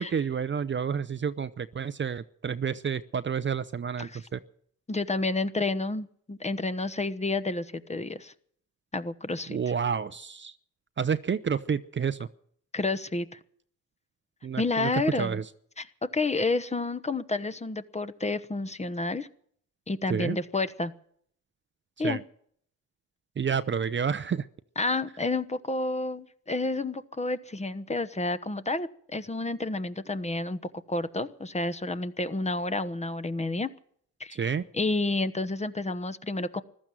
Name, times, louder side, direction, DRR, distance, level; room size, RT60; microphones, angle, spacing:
voice 1, 0.0-4.4 9.5-10.5 11.0-12.3 14.4-14.9 15.2-15.4 20.1-20.4 22.0-22.2 23.4-24.5 34.3-34.6, right 7 dB, 35° right, 13 dB, 0.7 m, -29 dB
voice 2, 4.9-8.3 8.9-9.6 12.7-13.4 14.6-15.4 15.8-15.9 16.1-19.3 19.9-20.9 22.0-22.2 24.8-30.6 30.9-33.7 34.2-36.6, left 2 dB, 20° left, 12 dB, 1.1 m, -30 dB
15.0 x 12.5 x 7.7 m, 0.62 s
supercardioid pair, 65°, 34 cm